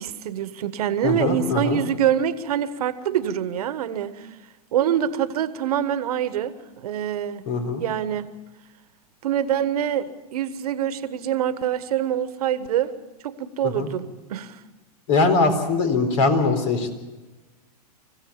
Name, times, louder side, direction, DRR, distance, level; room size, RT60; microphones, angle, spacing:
voice 1, 0.0-4.3 4.7-7.4 7.8-8.3 9.2-10.1 10.3-12.9 13.2-14.5, right 10 dB, 65° right, 13 dB, 1.4 m, -25 dB
voice 2, 1.0-1.8 7.5-7.8 13.8-13.9 15.1-16.9, left 3 dB, 55° left, 7 dB, 4.1 m, -21 dB
26.0 x 16.0 x 7.1 m, 1.2 s
hypercardioid pair, 110°, 21 cm